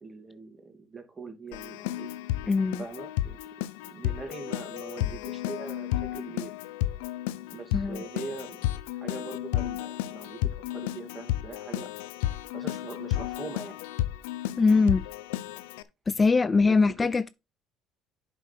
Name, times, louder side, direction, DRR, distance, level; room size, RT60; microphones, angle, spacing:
voice 1, 0.0-2.1 2.8-3.4 3.9-6.5 7.5-11.9 12.5-13.8 14.5-14.6 16.7-16.8, right 4 dB, 25° right, 2.7 m, -42 dB
Keyboard (musical), 1.5-15.8, left 14 dB, 90° left, 0.6 m, -32 dB
voice 2, 2.5-2.8 7.7-8.0 14.6-15.0 16.1-17.3, left 4 dB, 25° left, 0.4 m, -22 dB
8.1 x 6.2 x 4.5 m
supercardioid pair, 85°, 0 cm